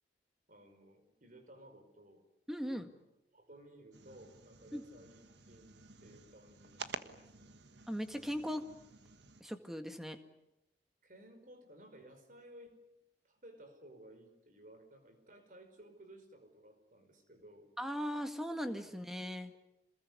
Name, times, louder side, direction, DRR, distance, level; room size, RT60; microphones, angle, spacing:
voice 1, 0.5-2.3 2.7-2.9 3.3-5.7 6.0-7.6 11.0-12.8 13.2-17.7, right 1 dB, 50° right, 7 dB, 5.1 m, -57 dB
voice 2, 2.5-2.9 4.7-4.8 7.9-8.7 9.4-10.2 17.8-19.5, equal, ahead, 6 dB, 1.9 m, -38 dB
sound 1, 3.9-9.4, right 4 dB, 80° right, 1.6 m, -51 dB
27.0 x 21.0 x 9.7 m, 0.89 s
head